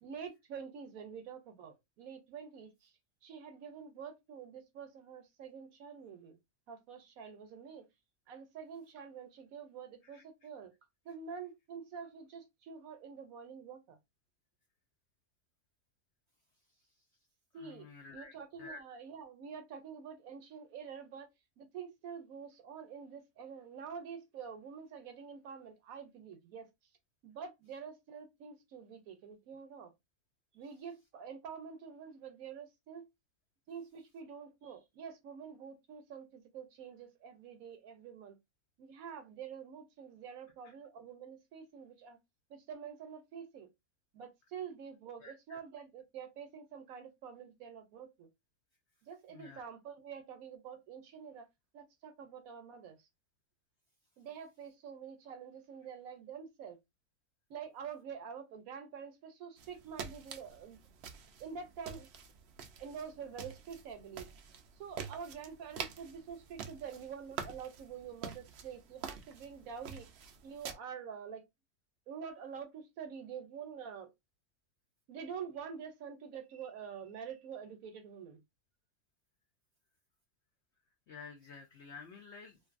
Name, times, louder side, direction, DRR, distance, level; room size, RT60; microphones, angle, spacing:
voice 1, 0.0-2.9 3.2-6.4 6.7-7.9 8.3-10.7 11.0-14.0 17.5-21.3 21.6-26.9 27.2-29.9 30.5-33.1 33.7-38.4 38.8-42.2 42.5-43.7 44.1-48.3 49.1-51.5 51.7-53.1 54.2-56.8 57.5-60.8 61.4-62.1 62.8-64.3 64.7-70.1 70.4-71.5 72.1-74.1 75.1-78.4, right 7 dB, 70° right, 0.9 m, -47 dB
voice 2, 17.5-18.8 40.6-40.7 45.2-45.6 49.3-49.6 81.1-82.6, left 4 dB, 75° left, 0.6 m, -51 dB
sound 1, 59.6-70.7, right 7 dB, 90° right, 0.5 m, -47 dB
2.6 x 2.5 x 2.4 m
omnidirectional pair, 1.7 m